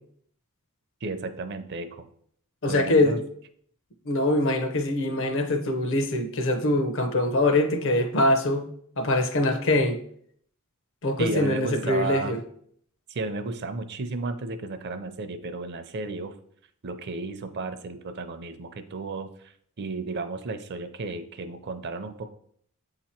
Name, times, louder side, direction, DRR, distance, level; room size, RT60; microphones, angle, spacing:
voice 1, 1.0-2.1 2.7-3.2 11.2-12.4 13.1-16.3 16.8-19.5 19.8-22.3, right 3 dB, 50° right, 0.5 m, -33 dB
voice 2, 2.6-3.1 4.1-8.7 9.0-10.0 11.0-12.4, left 1 dB, 60° left, 0.7 m, -23 dB
7.8 x 2.9 x 4.3 m
head